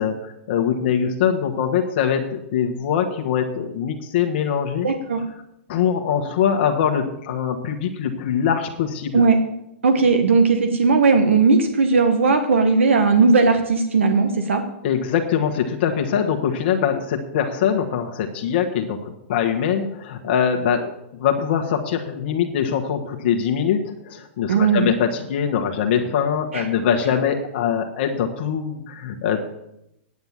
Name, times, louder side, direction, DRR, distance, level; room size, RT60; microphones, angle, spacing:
voice 1, 0.0-4.9 5.7-9.2 14.8-29.5, left 8 dB, 55° left, 3 dB, 1.3 m, -23 dB
voice 2, 4.8-5.2 9.1-9.4 9.8-14.6 24.5-24.9 26.5-26.7, right 4 dB, 85° right, 7 dB, 1.3 m, -17 dB
9.6 x 8.0 x 7.4 m, 0.82 s
hypercardioid pair, 135°, 7 cm